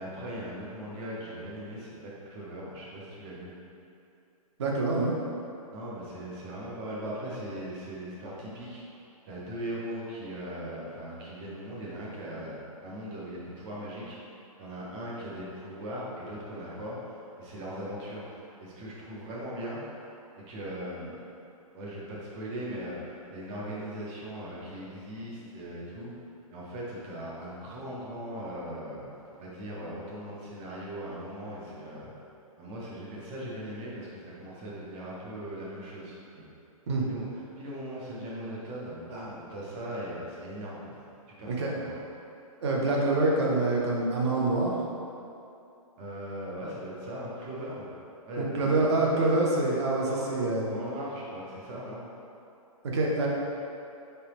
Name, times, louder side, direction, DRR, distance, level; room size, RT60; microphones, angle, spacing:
voice 1, 0.0-3.5 5.7-8.8 9.3-14.2 14.6-20.0 20.4-21.2 21.7-26.1 26.5-32.1 32.6-36.4 37.1-40.8 41.3-42.0 46.0-47.9 48.2-48.9 50.0-50.3 50.7-52.1, equal, 15° right, -6 dB, 0.4 m, -39 dB
voice 2, 4.6-5.1 36.9-37.0 41.5-41.7 42.6-44.7 48.4-50.8 52.8-53.3, right 2 dB, 50° right, -3 dB, 0.8 m, -26 dB
4.5 x 3.3 x 2.9 m, 2.7 s
hypercardioid pair, 170°, 19 cm